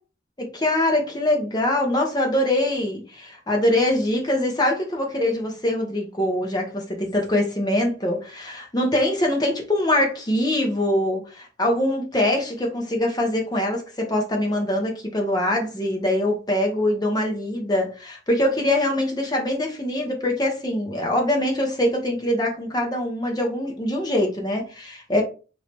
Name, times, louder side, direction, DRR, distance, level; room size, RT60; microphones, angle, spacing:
voice 1, 0.4-25.2, left 1 dB, 20° left, 0.7 m, -23 dB
3.2 x 2.7 x 3.2 m
head